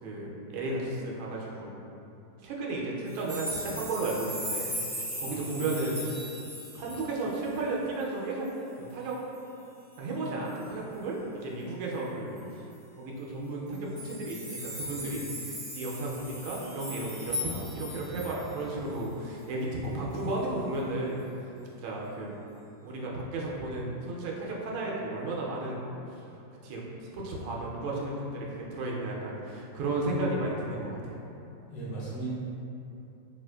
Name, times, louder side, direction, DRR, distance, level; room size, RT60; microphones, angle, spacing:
voice 1, 0.0-1.8 2.4-4.8 5.2-6.1 6.7-8.5 8.8-9.2 10.0-12.7 13.0-21.2 21.8-22.4 22.8-26.2 26.6-31.2, right 2 dB, 90° right, -3 dB, 1.4 m, -34 dB
sound 1, 3.1-7.6 8.0-8.1 8.4-8.5 8.9-9.4 10.5-10.7 12.4-12.5 12.7-12.8 13.7-18.5 19.0-19.1, left 1 dB, 30° left, 0.6 m, -38 dB
voice 2, 31.7-32.3, right 3 dB, 65° left, -8 dB, 1.4 m, -37 dB
4.1 x 2.4 x 2.2 m, 2.8 s
omnidirectional pair, 2.2 m